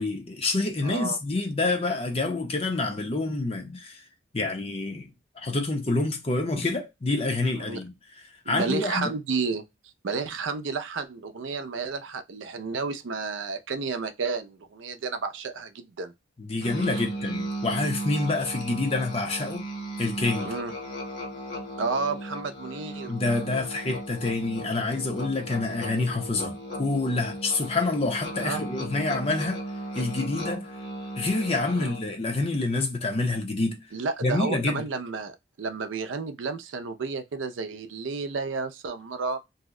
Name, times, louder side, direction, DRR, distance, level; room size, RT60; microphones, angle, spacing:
voice 1, 0.0-4.0 4.3-7.9 8.5-9.1 16.4-19.7 20.0-20.5 23.1-29.6 30.0-30.7 31.2-33.8 34.2-34.8, left 2 dB, 30° left, 0.6 m, -27 dB
voice 2, 0.8-1.2 7.1-7.3 7.6-7.8 8.5-9.6 10.0-16.1 16.9-17.0 20.4-20.7 21.8-23.1 28.4-28.7 31.7-31.9 33.9-39.4, right 4 dB, 90° right, 0.5 m, -31 dB
Musical instrument, 16.6-32.2, right 1 dB, 65° left, 1.1 m, -36 dB
2.7 x 2.1 x 3.6 m
head